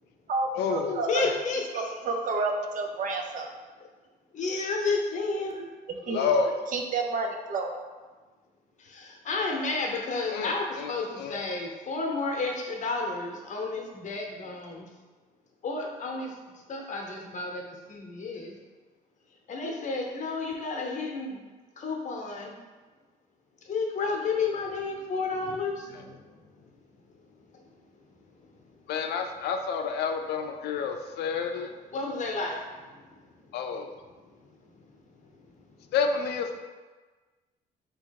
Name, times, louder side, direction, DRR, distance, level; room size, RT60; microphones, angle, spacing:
voice 1, 0.6-1.4 6.1-6.6 10.3-11.8 25.9-26.0 28.9-31.8 33.5-33.9 35.9-36.6, left 5 dB, 90° left, 5 dB, 0.4 m, -30 dB
voice 2, 1.1-1.9 4.3-5.7 6.1-6.3 8.8-14.9 15.6-16.3 16.7-17.6 17.9-18.5 19.5-21.4 21.8-22.6 23.7-26.3 31.9-32.6, left 3 dB, 45° left, 1 dB, 0.8 m, -31 dB
voice 3, 1.7-3.6 6.1-6.2 6.7-7.8, right 3 dB, 50° right, 2 dB, 0.6 m, -30 dB
3.4 x 2.9 x 4.6 m, 1.3 s
cardioid pair, 120°, 17 cm